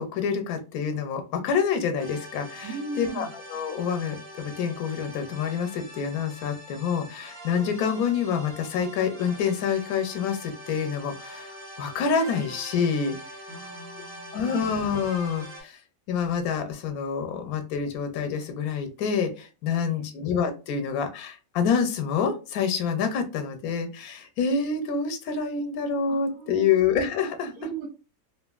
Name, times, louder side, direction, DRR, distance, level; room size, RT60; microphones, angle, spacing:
voice 1, 0.0-13.2 14.3-15.8 16.1-27.5, left 6 dB, 90° left, 6 dB, 1.1 m, -27 dB
sound 1, 2.0-15.6, right 1 dB, 40° right, 1.5 m, -43 dB
voice 2, 2.6-3.3 13.5-14.4 19.6-20.2 26.1-26.8 27.5-27.9, right 5 dB, 90° right, 1 dB, 1.3 m, -38 dB
3.0 x 2.4 x 2.3 m, 0.33 s
omnidirectional pair, 1.5 m